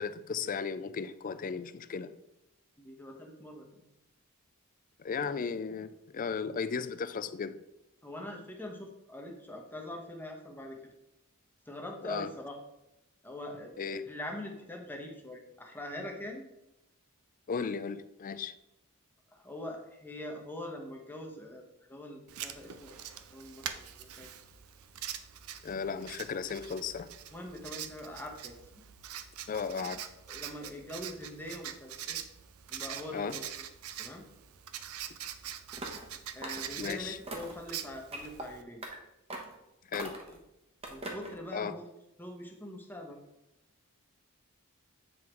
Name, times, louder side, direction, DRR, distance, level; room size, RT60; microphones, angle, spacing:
voice 1, 0.0-2.1 5.0-7.6 12.0-12.3 13.8-14.0 17.5-18.6 25.6-27.1 29.5-30.0 33.1-33.4 36.8-37.2 39.9-40.2 41.5-41.8, left 5 dB, 40° left, 0.4 m, -35 dB
voice 2, 2.8-3.8 8.0-10.8 11.7-12.6 13.2-13.7 14.0-16.5 19.3-23.0 23.3-24.3 27.3-28.8 30.3-32.2 32.7-33.6 34.0-34.2 36.3-38.8 40.3-40.4 40.9-41.9 42.2-43.2, left 1 dB, 10° left, 1.0 m, -43 dB
Writing, 22.3-38.6, right 10 dB, 80° right, 0.5 m, -44 dB
sound 1, 35.7-36.1 36.4-36.9 37.3-37.6 38.1-38.5 38.8-39.0 39.3-39.6 39.9-40.4 40.8-41.4, right 1 dB, 30° right, 1.1 m, -41 dB
7.8 x 3.7 x 4.4 m
head